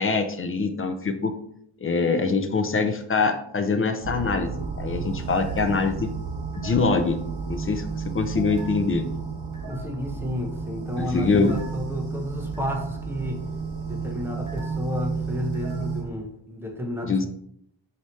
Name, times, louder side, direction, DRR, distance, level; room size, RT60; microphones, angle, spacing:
voice 1, 0.0-1.4 1.8-6.1 6.5-7.2 7.5-9.0 11.0-11.5 17.0-17.3, left 4 dB, 30° left, 7 dB, 0.4 m, -24 dB
sound 1, 4.0-16.1, right 5 dB, 40° right, 1.7 m, -32 dB
voice 2, 9.7-13.4 13.8-17.3, left 1 dB, 5° right, 2 dB, 0.7 m, -31 dB
4.7 x 2.8 x 3.1 m, 0.71 s
wide cardioid pair, 85°, 45 cm